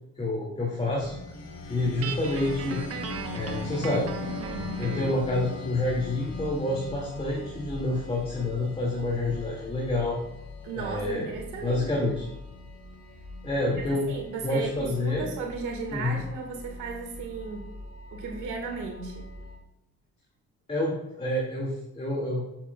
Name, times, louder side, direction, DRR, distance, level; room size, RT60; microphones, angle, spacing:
voice 1, 0.2-1.1 1.7-2.8 3.3-4.1 4.8-10.2 10.7-11.3 11.6-12.2 13.4-14.1 14.4-15.3 15.9-16.2 20.7-22.4, left 2 dB, 20° left, -3 dB, 2.3 m, -28 dB
sound 1, 0.9-19.6, left 4 dB, 55° left, 3.3 m, -41 dB
Guitar, 2.0-5.3, right 6 dB, 50° right, 1.0 m, -37 dB
voice 2, 10.6-12.2 13.9-17.7 18.1-19.3, right 4 dB, 90° right, 2 dB, 1.9 m, -36 dB
12.5 x 7.4 x 2.3 m, 0.95 s
cardioid pair, 90°, 30 cm